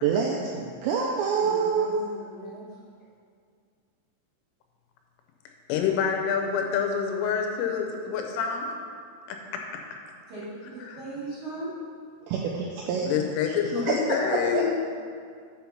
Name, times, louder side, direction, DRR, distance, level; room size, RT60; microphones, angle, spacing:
voice 1, 0.0-2.0 12.3-13.1 13.4-14.7, right 5 dB, 85° right, -1 dB, 2.5 m, -27 dB
voice 2, 1.4-2.8 10.3-11.7, right 2 dB, 40° right, -11 dB, 2.5 m, -39 dB
voice 3, 5.7-8.7 9.3-9.6 10.9-11.0 13.1-14.7, left 7 dB, 85° left, 3 dB, 3.3 m, -27 dB
7.3 x 5.7 x 5.8 m, 2.1 s
omnidirectional pair, 5.7 m